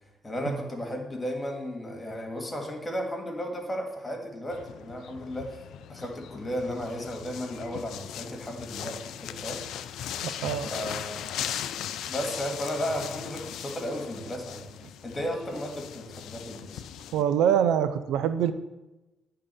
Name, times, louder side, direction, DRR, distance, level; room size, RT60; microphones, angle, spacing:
voice 1, 0.2-9.6 10.6-11.6 12.0-14.7 15.0-16.8, equal, 20° left, 2 dB, 2.0 m, -34 dB
sound 1, 4.5-17.2, left 10 dB, 80° left, 0.4 m, -39 dB
voice 2, 10.2-10.7 17.1-18.5, right 9 dB, 90° right, 12 dB, 0.5 m, -24 dB
9.5 x 3.8 x 6.8 m, 1.0 s
cardioid pair, 90°, 0 cm